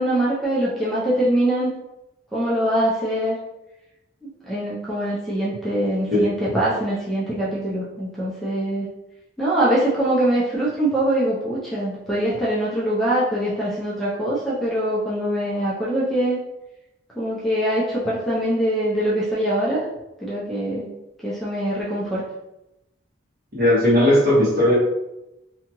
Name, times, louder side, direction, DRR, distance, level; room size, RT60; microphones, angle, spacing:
voice 1, 0.0-1.7 2.3-3.4 4.2-8.9 9.4-16.4 17.2-19.8 20.2-20.9 21.2-22.2, right 1 dB, ahead, -8 dB, 0.5 m, -23 dB
voice 2, 23.5-24.7, left 1 dB, 50° right, -7 dB, 1.2 m, -17 dB
2.8 x 2.3 x 2.9 m, 0.92 s
head